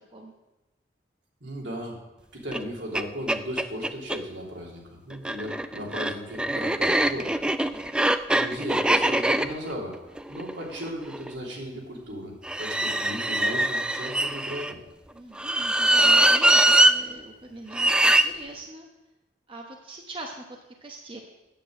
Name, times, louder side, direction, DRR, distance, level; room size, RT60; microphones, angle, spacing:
voice 1, 1.4-2.0 2.3-7.4 8.3-10.0 10.3-14.8, equal, 75° right, -2 dB, 3.1 m, -36 dB
sound 1, 2.5-2.6 2.9-3.0 3.3-4.2 5.1-11.3 12.4-14.7 15.4-16.9 17.7-18.3, right 1 dB, 5° right, 0.3 m, -22 dB
voice 2, 7.9-8.2 15.1-18.9 19.5-21.2, right 2 dB, 30° right, 1 dB, 1.0 m, -42 dB
8.9 x 8.5 x 7.6 m, 1.0 s
head